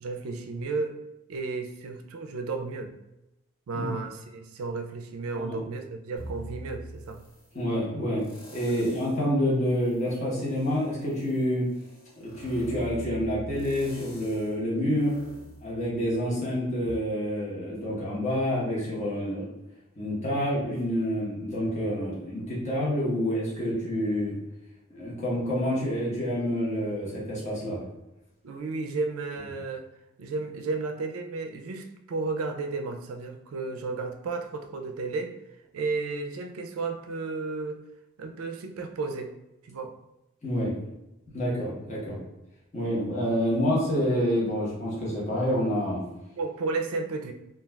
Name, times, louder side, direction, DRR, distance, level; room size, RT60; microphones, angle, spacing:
voice 1, 0.0-1.0 1.3-2.9 3.7-7.2 28.4-29.8 30.2-35.3 35.7-37.8 38.2-39.3 39.6-39.9 46.4-47.3, right 3 dB, 85° right, 6 dB, 0.4 m, -33 dB
sound 1, 6.2-7.6 8.2-9.3 9.7-16.4 16.9-17.0, right 1 dB, 70° left, 1.2 m, -44 dB
voice 2, 7.5-8.3 8.5-11.7 12.2-15.2 15.6-19.5 20.0-24.3 24.9-27.8 40.4-40.7 41.3-42.2 42.7-46.0, equal, 35° left, -7 dB, 0.9 m, -28 dB
2.3 x 2.3 x 3.1 m, 0.93 s
head